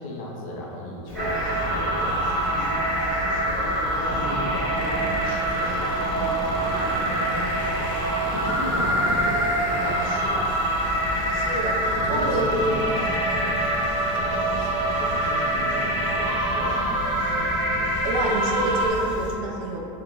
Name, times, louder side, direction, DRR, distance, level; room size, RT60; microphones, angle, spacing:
voice 1, 0.0-2.8 3.2-3.8 4.1-10.6 11.9-16.9, left 1 dB, 80° left, -3 dB, 0.7 m, -35 dB
Fowl / Chirp tweet, 1.1-19.3, equal, 20° left, 0.8 m, -34 dB
sound 1, 1.1-18.9, right 1 dB, 5° right, 1.1 m, -25 dB
sound 2, 4.8-13.8, left 1 dB, 40° left, 0.4 m, -40 dB
voice 2, 11.3-12.9 18.0-19.9, right 2 dB, 90° right, -1 dB, 0.5 m, -27 dB
2.6 x 2.2 x 3.0 m, 2.7 s
supercardioid pair, 160°, 17 cm